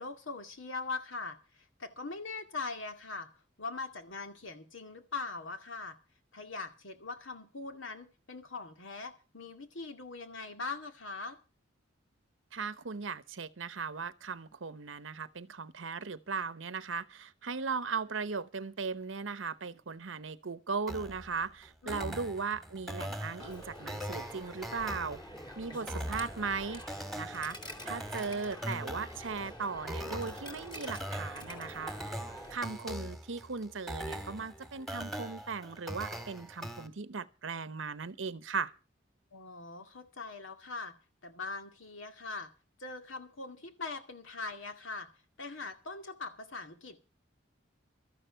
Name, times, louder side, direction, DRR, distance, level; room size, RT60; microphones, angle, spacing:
voice 1, 0.0-3.3 3.6-6.0 6.3-11.4 21.8-22.2 39.3-40.9 41.2-42.5 42.8-45.1 45.4-47.0, left 3 dB, 85° left, 2.2 m, -41 dB
voice 2, 12.5-25.2 25.6-26.8 27.2-27.6 27.8-32.2 32.5-38.7, right 5 dB, 75° right, 0.9 m, -38 dB
sound 1, 20.9-36.9, equal, ahead, 1.9 m, -42 dB
Coin (dropping), 23.4-32.6, equal, 25° left, 2.6 m, -47 dB
13.0 x 11.5 x 5.7 m
head